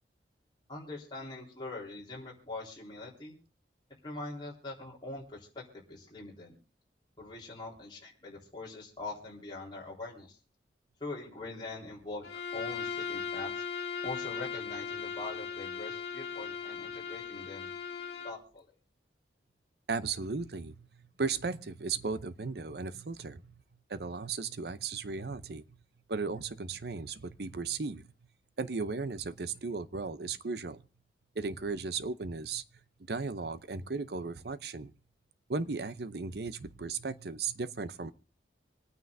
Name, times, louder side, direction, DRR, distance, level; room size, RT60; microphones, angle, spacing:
voice 1, 0.7-3.4 4.0-6.5 7.2-10.4 11.0-13.6 14.0-17.7 18.2-18.7, left 2 dB, 25° left, 3.8 m, -43 dB
Bowed string instrument, 12.2-18.4, left 6 dB, 65° left, 1.8 m, -38 dB
voice 2, 19.9-23.6 23.9-25.6 26.1-28.0 28.6-30.8 31.4-32.6 33.1-34.9 35.5-38.1, right 4 dB, 60° right, 0.7 m, -36 dB
26.0 x 9.4 x 2.7 m
head